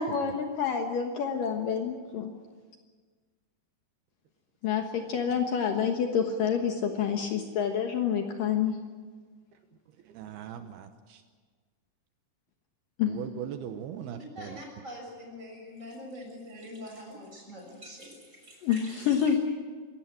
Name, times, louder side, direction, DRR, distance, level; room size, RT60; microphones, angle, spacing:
voice 1, 0.0-2.3 4.6-8.8 13.0-13.1 18.6-19.4, left 7 dB, 65° left, 4 dB, 2.7 m, -28 dB
voice 2, 10.0-10.9 13.1-14.6, right 9 dB, 75° right, 7 dB, 2.8 m, -39 dB
voice 3, 14.4-19.1, left 1 dB, 15° right, 0 dB, 7.0 m, -44 dB
23.0 x 17.5 x 8.9 m, 1.5 s
omnidirectional pair, 4.8 m